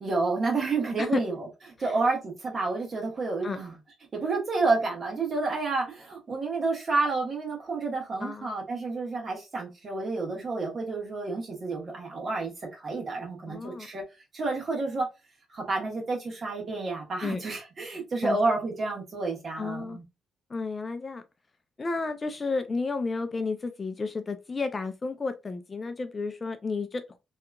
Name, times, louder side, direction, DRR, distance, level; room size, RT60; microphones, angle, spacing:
voice 1, 0.0-1.5 1.8-3.7 4.1-14.0 14.3-15.1 15.5-20.0, right 3 dB, 45° right, 1.2 m, -29 dB
voice 2, 8.2-8.5 13.4-13.9 17.2-17.4 18.2-18.4 19.6-20.0 20.5-21.2 21.8-27.2, left 4 dB, 30° left, 0.3 m, -32 dB
2.8 x 2.3 x 2.3 m
cardioid pair, 90°, 0 cm